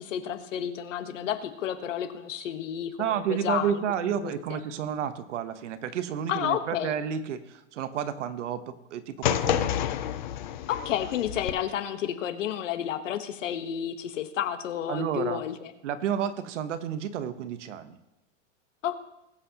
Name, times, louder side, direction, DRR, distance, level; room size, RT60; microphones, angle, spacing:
voice 1, 0.0-3.8 4.2-4.6 6.3-6.9 10.7-15.6 18.8-19.0, left 10 dB, 75° left, 9 dB, 1.3 m, -31 dB
voice 2, 3.0-9.8 14.9-15.4 15.8-18.0, right 8 dB, 70° right, 11 dB, 1.0 m, -31 dB
sound 1, 9.2-11.5, left 11 dB, 40° left, 0.5 m, -29 dB
20.5 x 7.9 x 2.9 m, 0.92 s
supercardioid pair, 180°, 38 cm